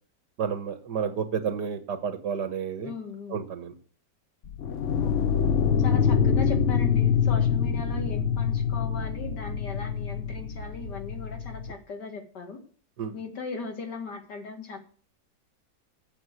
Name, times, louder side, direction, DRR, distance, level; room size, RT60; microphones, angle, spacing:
voice 1, 0.4-2.9 3.3-3.7 13.0-13.2, right 7 dB, 70° right, 8 dB, 1.8 m, -30 dB
voice 2, 2.8-3.4 4.9-5.2 5.8-12.6 13.1-14.8, left 4 dB, 70° left, 4 dB, 2.4 m, -38 dB
sound 1, 4.5-11.7, left 7 dB, 50° left, 1.0 m, -25 dB
8.7 x 7.2 x 7.9 m, 0.42 s
omnidirectional pair, 1.9 m